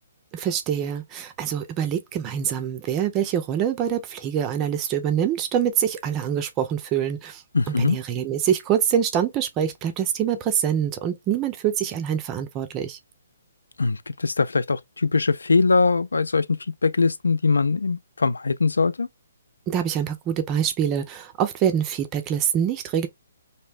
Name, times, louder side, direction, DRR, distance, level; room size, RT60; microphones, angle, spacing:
voice 1, 0.3-13.0 19.7-23.1, right 9 dB, 25° right, 0.4 m, -25 dB
voice 2, 7.5-8.0 13.8-16.5 16.8-19.1, left 4 dB, 85° left, 0.3 m, -21 dB
2.6 x 2.1 x 3.3 m
hypercardioid pair, 145°, 0 cm